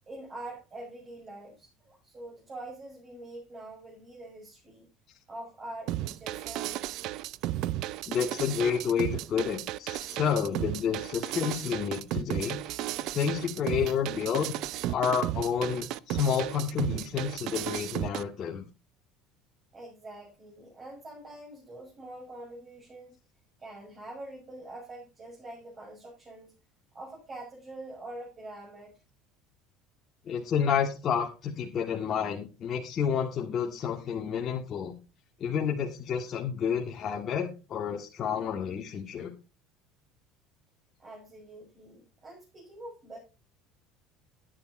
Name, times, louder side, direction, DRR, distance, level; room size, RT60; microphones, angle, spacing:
voice 1, 0.1-4.8 5.3-7.0 19.7-23.1 23.6-26.5 26.9-28.9 41.0-43.2, right 1 dB, 30° right, -3 dB, 7.5 m, -45 dB
sound 1, 5.9-18.2, right 15 dB, 65° right, 0.6 m, -34 dB
voice 2, 8.1-12.6 13.0-14.5 14.9-18.6 30.3-34.9 35.4-39.3, left 7 dB, 45° left, 0 dB, 1.9 m, -30 dB
11.0 x 10.5 x 4.3 m, 0.31 s
supercardioid pair, 100°, 0 cm